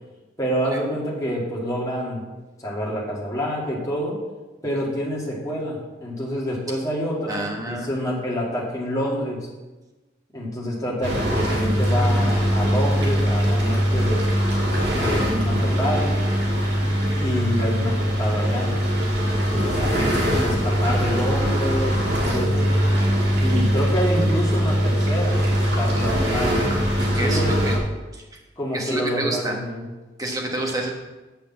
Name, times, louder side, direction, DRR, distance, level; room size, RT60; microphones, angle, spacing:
voice 1, 0.4-2.2 2.6-4.2 4.6-9.5 10.3-14.3 14.9-16.2 17.1-18.7 19.0-22.7 23.4-26.6 27.2-27.7 28.6-29.9, equal, 20° left, -5 dB, 2.2 m, -27 dB
voice 2, 7.3-7.9 27.0-27.8 28.2-28.4 28.7-29.6 30.2-30.9, right 1 dB, 20° right, 0 dB, 1.3 m, -28 dB
sound 1, 11.0-27.8, equal, 75° right, 2.1 m, -21 dB
6.8 x 6.0 x 7.4 m, 1.2 s
head